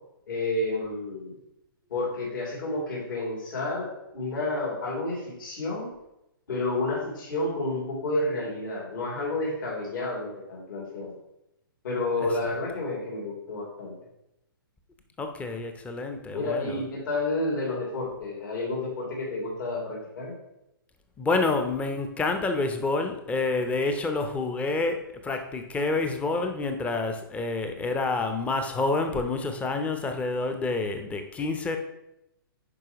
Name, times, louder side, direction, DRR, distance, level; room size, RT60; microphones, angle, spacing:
voice 1, 0.3-1.4 1.9-5.9 6.5-11.1 11.8-13.9 16.3-20.3, left 2 dB, 65° left, -3 dB, 2.7 m, -30 dB
voice 2, 15.2-16.8 21.2-31.8, left 3 dB, 10° left, 6 dB, 0.6 m, -28 dB
11.0 x 4.5 x 3.0 m, 0.86 s
hypercardioid pair, 125°, 12 cm